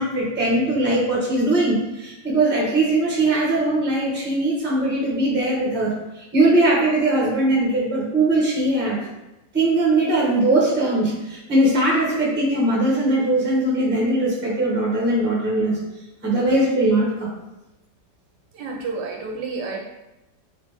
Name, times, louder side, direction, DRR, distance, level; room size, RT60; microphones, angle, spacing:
voice 1, 0.0-9.0 9.5-15.8 16.2-17.3, right 2 dB, 10° right, -5 dB, 0.5 m, -20 dB
voice 2, 18.5-19.8, right 4 dB, 75° right, 0 dB, 1.1 m, -30 dB
3.5 x 3.1 x 3.3 m, 0.96 s
omnidirectional pair, 2.1 m